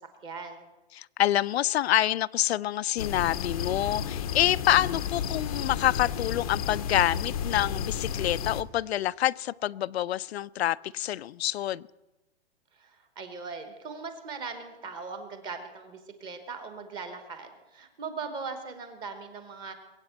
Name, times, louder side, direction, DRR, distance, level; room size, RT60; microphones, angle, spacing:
voice 1, 0.2-0.6 12.8-19.7, right 4 dB, 15° right, 1.1 m, -39 dB
voice 2, 0.9-11.8, left 12 dB, 75° left, 0.5 m, -27 dB
sound 1, 3.0-8.6, left 8 dB, 35° left, 0.6 m, -32 dB
21.0 x 8.2 x 8.0 m
hypercardioid pair, 175°, 32 cm